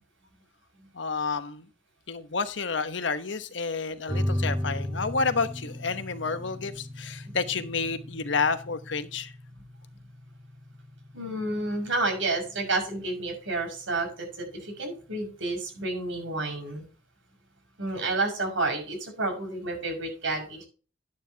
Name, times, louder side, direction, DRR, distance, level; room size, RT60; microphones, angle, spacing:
voice 1, 0.9-1.7 2.1-9.3, left 4 dB, 65° left, 1.1 m, -30 dB
sound 1, 4.1-15.1, left 1 dB, 25° right, 2.0 m, -36 dB
voice 2, 11.1-16.9 17.8-20.6, right 2 dB, 75° right, 6.2 m, -30 dB
11.5 x 10.5 x 2.9 m
head